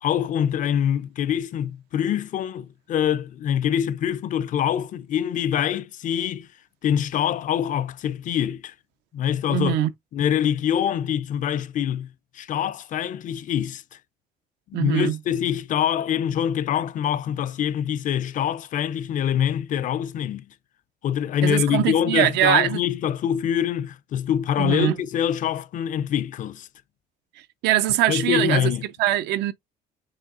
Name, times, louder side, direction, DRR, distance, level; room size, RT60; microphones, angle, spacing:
voice 1, 0.0-6.5 6.8-8.7 9.1-9.8 10.1-14.0 14.7-20.5 21.0-26.7 28.1-28.8, left 9 dB, 50° left, 0.4 m, -25 dB
voice 2, 9.5-9.9 14.7-15.2 21.4-22.8 24.6-25.0 27.6-28.7 29.0-29.5, right 14 dB, 85° right, 0.5 m, -22 dB
5.0 x 2.9 x 2.4 m
cardioid pair, 110°, 17 cm